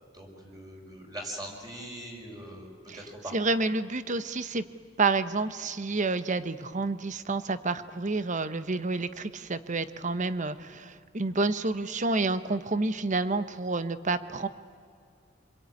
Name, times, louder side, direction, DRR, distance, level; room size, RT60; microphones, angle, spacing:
voice 1, 0.0-3.3, right 1 dB, 20° right, 1 dB, 5.6 m, -42 dB
voice 2, 3.3-4.6 5.0-14.5, right 3 dB, 40° right, 12 dB, 1.0 m, -29 dB
27.5 x 22.0 x 9.6 m, 2.3 s
head